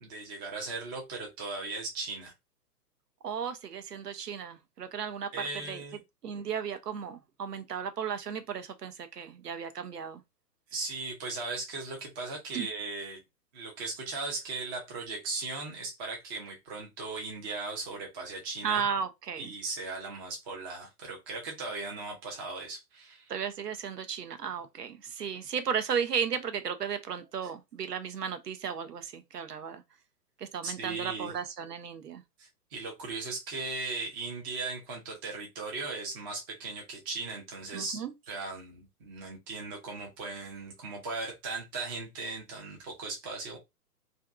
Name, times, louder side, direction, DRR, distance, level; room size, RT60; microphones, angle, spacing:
voice 1, 0.0-2.3 5.3-6.0 10.7-13.2 13.5-18.8 19.4-23.3 30.6-31.3 32.4-38.0 38.3-43.6, right 3 dB, 15° right, 0.5 m, -38 dB
voice 2, 3.2-5.3 5.7-5.8 6.2-10.2 12.5-12.7 18.6-19.5 23.3-29.8 30.4-32.2 37.7-38.1, right 7 dB, 75° right, 0.8 m, -34 dB
2.6 x 2.5 x 2.3 m
figure-of-eight pair, 120°, 47 cm